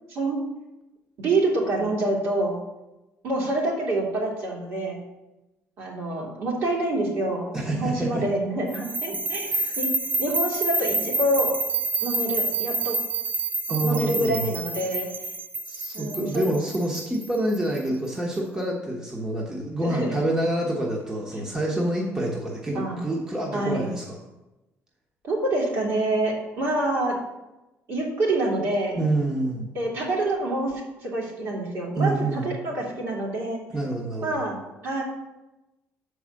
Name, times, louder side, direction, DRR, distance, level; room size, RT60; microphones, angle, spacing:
voice 1, 0.1-0.4 1.2-2.6 3.2-5.0 5.8-9.9 10.2-11.5 12.0-13.0 13.8-15.1 15.9-16.6 19.8-20.3 22.7-23.0 23.5-23.9 25.2-27.2 27.9-29.0 29.7-33.6 34.2-35.0, right 2 dB, 60° right, -3 dB, 2.6 m, -27 dB
voice 2, 7.5-8.2 9.5-9.8 13.7-14.5 15.7-24.2 28.9-29.7 31.9-32.5 33.7-34.4, right 1 dB, 15° right, -1 dB, 1.0 m, -27 dB
sound 1, 8.7-17.8, right 3 dB, 35° right, 0.7 m, -28 dB
6.7 x 4.8 x 6.3 m, 1.0 s
cardioid pair, 140°, 5 cm